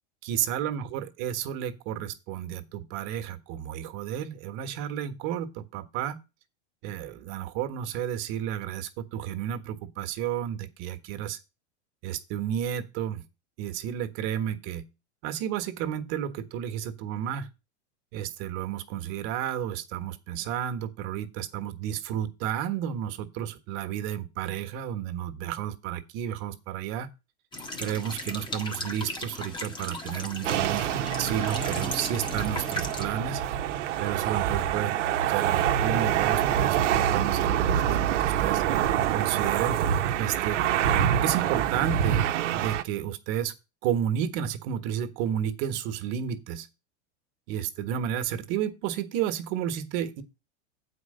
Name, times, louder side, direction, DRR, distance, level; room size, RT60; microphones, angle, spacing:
voice 1, 0.2-6.2 6.8-11.4 12.0-13.2 13.6-14.8 15.2-17.5 18.1-27.1 27.8-33.4 34.0-35.0 35.3-38.6 39.1-39.8 40.2-40.6 41.1-42.2 42.5-43.5 43.8-46.7 47.5-50.2, right 10 dB, 45° right, 1.4 m, -32 dB
sound 1, 27.5-33.1, left 1 dB, 15° left, 1.2 m, -37 dB
sound 2, 30.4-42.8, right 10 dB, 85° right, 1.0 m, -26 dB
8.1 x 4.8 x 6.6 m
supercardioid pair, 140°, 35 cm